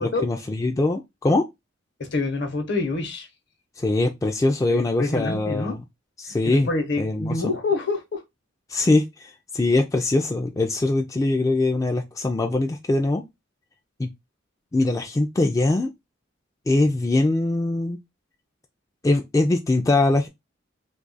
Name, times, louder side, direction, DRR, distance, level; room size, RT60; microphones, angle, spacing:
voice 1, 0.0-1.5 3.8-5.8 6.2-6.7 7.0-7.5 8.7-13.2 14.0-14.1 14.7-15.9 16.7-18.0 19.0-20.3, left 2 dB, 15° left, 0.3 m, -22 dB
voice 2, 2.0-3.3 4.7-5.7 6.4-8.2, left 3 dB, 60° left, 0.8 m, -27 dB
2.7 x 2.4 x 3.8 m
head